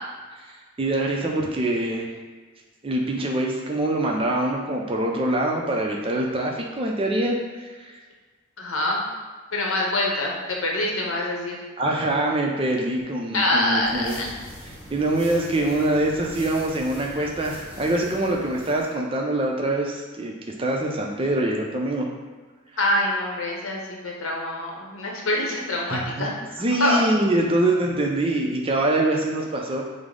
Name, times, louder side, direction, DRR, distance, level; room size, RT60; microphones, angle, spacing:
voice 1, 0.8-2.1 2.8-7.4 7.8-7.9 11.8-14.2 14.9-20.3 20.6-22.1 25.9-26.3 26.6-29.8, right 1 dB, 25° right, 0 dB, 0.4 m, -24 dB
voice 2, 8.6-9.0 9.5-11.6 13.3-14.3 22.8-26.5 26.8-27.0, left 1 dB, 70° left, -2 dB, 0.8 m, -25 dB
sound 1, 13.7-18.9, equal, 10° right, 0.8 m, -42 dB
5.0 x 2.0 x 3.7 m, 1.4 s
head